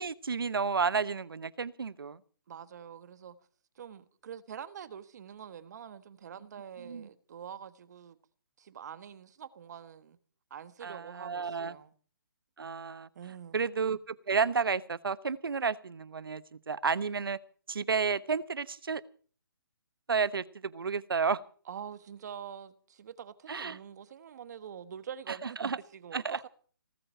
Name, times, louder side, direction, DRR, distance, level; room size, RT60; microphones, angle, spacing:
voice 1, 0.0-2.2 6.8-7.1 10.8-11.7 12.6-13.1 13.5-17.4 17.7-19.0 20.1-21.4 23.5-23.8 25.3-25.8 26.1-26.4, right 5 dB, 80° right, 1.1 m, -31 dB
voice 2, 2.5-3.3 3.7-8.2 8.6-10.2 10.5-11.9 13.1-13.6 21.7-26.5, right 8 dB, 50° right, 1.5 m, -45 dB
19.0 x 7.8 x 9.0 m
hypercardioid pair, 150°, 12 cm